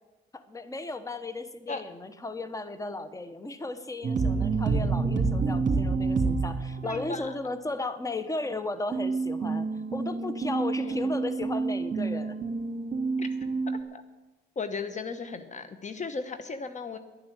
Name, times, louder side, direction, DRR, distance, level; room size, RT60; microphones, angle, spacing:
voice 1, 0.3-12.4, left 2 dB, 15° left, 12 dB, 1.1 m, -35 dB
sound 1, 4.0-7.2 8.9-13.8, right 4 dB, 40° right, 2.7 m, -28 dB
voice 2, 6.8-7.4 10.8-11.1 13.2-13.3 13.7-14.0 14.6-17.0, left 4 dB, 40° left, 10 dB, 1.0 m, -36 dB
11.0 x 9.9 x 8.1 m, 1.1 s
cardioid pair, 90°, 20 cm